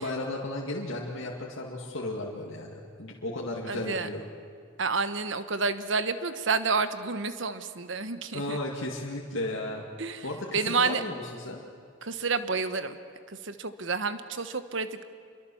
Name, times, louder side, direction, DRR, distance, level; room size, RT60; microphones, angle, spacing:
voice 1, 0.0-4.2 8.3-9.8 10.2-11.6, left 1 dB, 75° left, -2 dB, 2.3 m, -34 dB
voice 2, 3.7-4.1 4.8-8.6 10.0-10.3 10.5-11.0 12.0-13.0 13.3-15.0, right 4 dB, 70° right, 11 dB, 1.2 m, -29 dB
27.0 x 22.5 x 7.2 m, 2.1 s
head